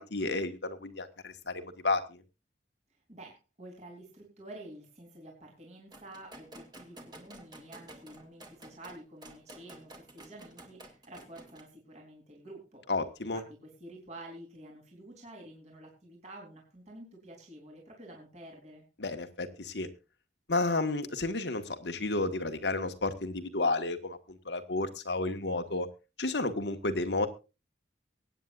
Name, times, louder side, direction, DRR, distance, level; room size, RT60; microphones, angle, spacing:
voice 1, 0.0-2.2 12.9-13.4 19.0-19.9 20.5-25.9 26.2-27.3, left 2 dB, 80° left, 7 dB, 1.6 m, -32 dB
voice 2, 3.1-12.8 13.2-18.8, right 1 dB, 40° right, 0 dB, 3.8 m, -49 dB
sound 1, 5.9-11.6, right 1 dB, 25° right, 2.4 m, -51 dB
23.5 x 9.3 x 2.5 m, 0.30 s
head